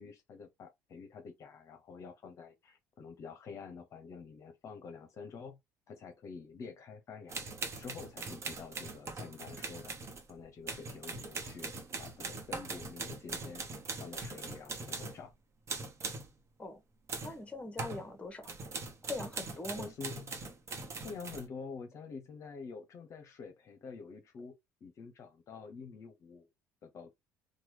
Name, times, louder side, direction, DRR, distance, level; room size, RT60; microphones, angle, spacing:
voice 1, 0.0-5.6 5.9-7.5 7.8-9.9 10.3-15.3 19.7-20.4 21.0-24.5 24.8-26.5 26.8-27.1, left 5 dB, 50° left, 0.7 m, -48 dB
sound 1, 7.3-15.3 15.7-16.3 17.1-17.4 17.8-18.0 18.4-21.5, right 3 dB, 45° right, 1.0 m, -41 dB
voice 2, 17.2-18.5 19.0-19.9, left 2 dB, 20° left, 1.0 m, -42 dB
3.0 x 2.2 x 3.2 m
hypercardioid pair, 70°, 7 cm